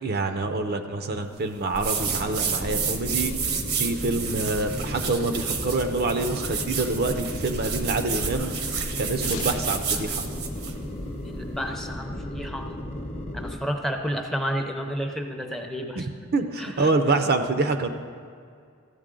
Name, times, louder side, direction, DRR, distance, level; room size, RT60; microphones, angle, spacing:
voice 1, 0.0-3.3 3.8-8.5 9.0-10.2 16.0-16.1 16.3-17.9, right 3 dB, 45° right, 7 dB, 0.5 m, -26 dB
sound 1, 1.7-10.8, right 5 dB, 75° right, 0.9 m, -30 dB
sound 2, 2.0-13.6, left 1 dB, 30° left, 0.8 m, -35 dB
sound 3, 9.2-12.0, left 2 dB, 90° left, 0.8 m, -39 dB
voice 2, 11.3-12.7 13.3-16.1 16.6-16.9, equal, ahead, 3 dB, 0.6 m, -31 dB
14.0 x 8.1 x 3.7 m, 2.2 s
head